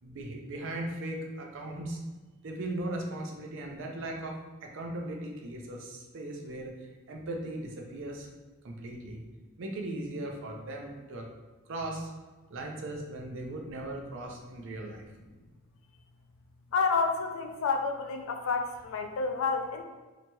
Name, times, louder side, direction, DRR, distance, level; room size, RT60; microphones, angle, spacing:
voice 1, 0.0-2.0 2.4-6.7 7.1-8.3 8.6-9.2 9.6-11.3 11.7-12.1 12.5-15.0, right 1 dB, 60° right, 1 dB, 0.5 m, -38 dB
voice 2, 16.7-19.8, left 4 dB, 60° left, 4 dB, 0.3 m, -29 dB
2.8 x 2.8 x 2.2 m, 1.3 s
head